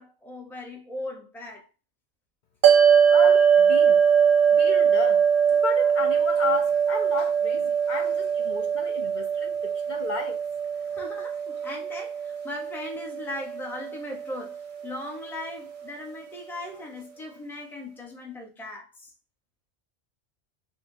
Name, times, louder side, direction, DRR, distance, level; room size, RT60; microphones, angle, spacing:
voice 1, 0.0-1.7 10.8-19.1, left 2 dB, ahead, 0.5 m, -38 dB
sound 1, 2.6-15.1, right 7 dB, 55° right, 0.6 m, -22 dB
voice 2, 3.1-4.0 4.5-5.2 5.5-10.4, left 4 dB, 55° left, 0.6 m, -33 dB
4.5 x 2.1 x 2.6 m
omnidirectional pair, 1.1 m